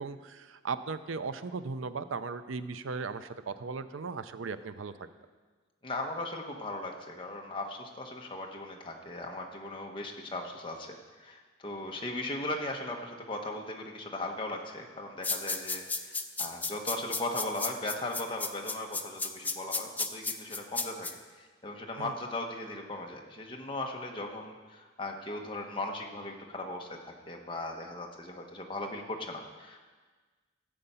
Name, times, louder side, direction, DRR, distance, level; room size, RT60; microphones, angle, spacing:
voice 1, 0.0-4.9 22.0-22.1, right 4 dB, 85° right, 12 dB, 0.6 m, -37 dB
voice 2, 5.8-29.8, left 2 dB, 25° left, 1 dB, 1.2 m, -38 dB
sound 1, 15.2-21.1, left 4 dB, 10° left, 0.4 m, -33 dB
13.5 x 7.9 x 5.6 m, 1.4 s
head